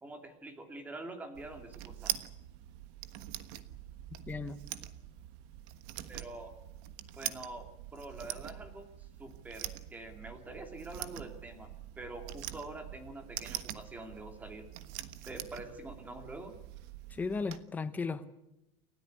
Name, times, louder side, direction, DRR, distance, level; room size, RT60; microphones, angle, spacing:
voice 1, 0.0-2.2 6.1-6.5 7.1-14.7 15.3-16.5, right 2 dB, 10° right, 2.5 m, -46 dB
sound 1, 1.3-17.6, right 14 dB, 60° right, 1.4 m, -44 dB
voice 2, 4.3-4.6 17.1-18.3, left 4 dB, 10° left, 1.0 m, -35 dB
29.5 x 13.5 x 9.6 m
cardioid pair, 180°, 16 cm